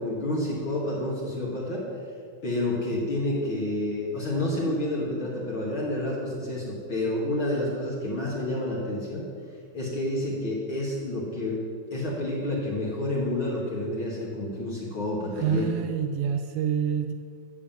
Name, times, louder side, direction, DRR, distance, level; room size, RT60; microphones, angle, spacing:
voice 1, 0.0-1.8 2.4-9.2 9.7-11.6 11.9-15.7, left 1 dB, 55° left, -5 dB, 1.3 m, -29 dB
voice 2, 15.3-17.1, right 8 dB, 90° right, 6 dB, 2.5 m, -27 dB
14.5 x 7.4 x 7.3 m, 2.2 s
omnidirectional pair, 5.7 m